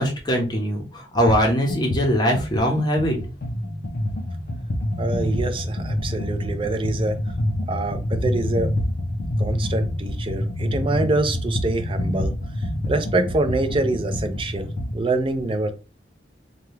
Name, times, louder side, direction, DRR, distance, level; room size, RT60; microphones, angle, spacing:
voice 1, 0.0-3.2, equal, 25° left, 0.8 m, -21 dB
sound 1, 1.3-1.4 1.7-15.0, left 1 dB, 55° left, 0.5 m, -27 dB
voice 2, 5.0-7.2 7.7-8.7 9.4-15.7, right 2 dB, 30° right, 0.4 m, -25 dB
2.8 x 2.3 x 3.2 m
head